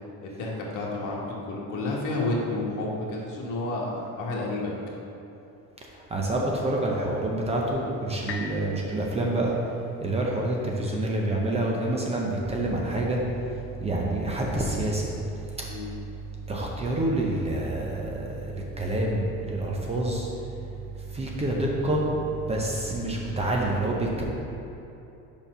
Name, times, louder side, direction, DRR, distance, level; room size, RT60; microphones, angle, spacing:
voice 1, 0.2-4.7 15.7-15.9, left 2 dB, 65° left, -3 dB, 1.5 m, -30 dB
voice 2, 5.9-9.5 10.0-15.7 16.5-20.5 21.0-22.1 22.3-24.2, right 1 dB, 20° right, -2 dB, 0.5 m, -28 dB
sound 1, 8.3-12.2 12.8-12.9, left 4 dB, 40° left, 0.5 m, -43 dB
5.3 x 4.5 x 6.1 m, 3.0 s
cardioid pair, 170°, 33 cm